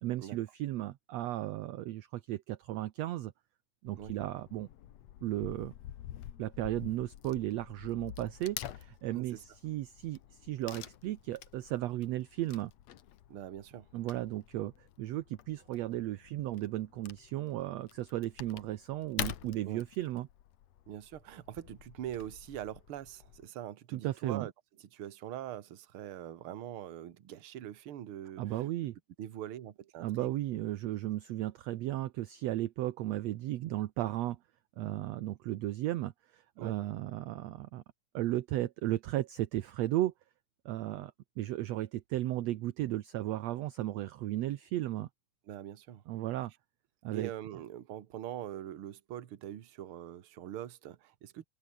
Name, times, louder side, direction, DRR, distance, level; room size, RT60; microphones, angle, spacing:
voice 1, 0.0-3.3 3.8-4.7 5.2-5.7 6.4-12.7 13.9-20.3 23.9-24.5 28.4-29.0 30.0-34.4 34.8-37.8 38.1-40.1 40.6-45.1 46.1-46.5 47.0-47.3, right 15 dB, 70° right, 1.8 m, -35 dB
Wood / Tearing, 3.9-23.5, left 12 dB, 60° left, 2.2 m, -47 dB
voice 2, 13.3-13.9 19.7-19.8 20.9-24.5 24.8-28.7 29.2-30.3 36.6-36.8 45.5-46.0 47.1-51.4, right 11 dB, 55° right, 1.8 m, -43 dB
omnidirectional pair, 3.6 m